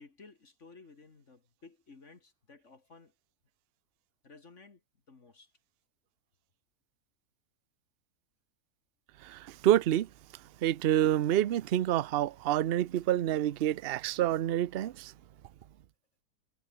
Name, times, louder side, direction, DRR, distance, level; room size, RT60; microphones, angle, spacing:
voice 1, 0.0-3.1 4.2-4.8 5.1-5.5, left 4 dB, 50° left, 2.4 m, -55 dB
voice 2, 9.2-10.1 10.6-15.1, right 12 dB, 60° right, 0.6 m, -28 dB
omnidirectional pair, 1.7 m